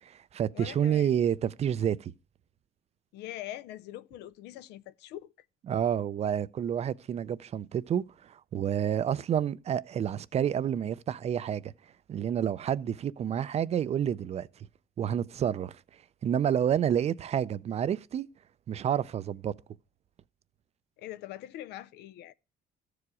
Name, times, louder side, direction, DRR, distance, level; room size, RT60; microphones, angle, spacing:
voice 1, 0.0-2.1 5.7-11.7 12.1-14.5 15.0-15.8 16.2-18.3 18.7-19.6, right 9 dB, 40° right, 0.4 m, -29 dB
voice 2, 0.5-1.1 3.1-5.3 21.0-22.3, left 13 dB, 80° left, 0.5 m, -43 dB
14.0 x 4.8 x 4.8 m
cardioid pair, 110°, 17 cm